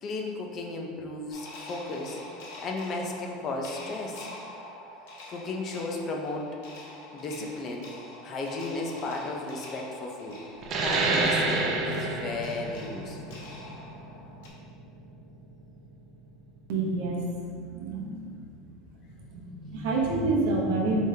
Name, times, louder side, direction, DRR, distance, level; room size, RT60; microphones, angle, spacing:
voice 1, 0.0-2.2 2.6-4.3 5.3-6.5 7.1-7.9 8.2-10.4 10.8-13.5, left 2 dB, 30° left, 1 dB, 0.5 m, -35 dB
sound 1, 1.3-14.5, left 1 dB, 80° left, 0.9 m, -45 dB
sound 2, 10.6-15.8, right 3 dB, 35° right, 0.5 m, -29 dB
voice 2, 16.7-18.6 19.1-21.0, right 2 dB, 75° right, -2 dB, 0.7 m, -29 dB
5.0 x 3.6 x 2.7 m, 2.2 s
supercardioid pair, 160°, 0 cm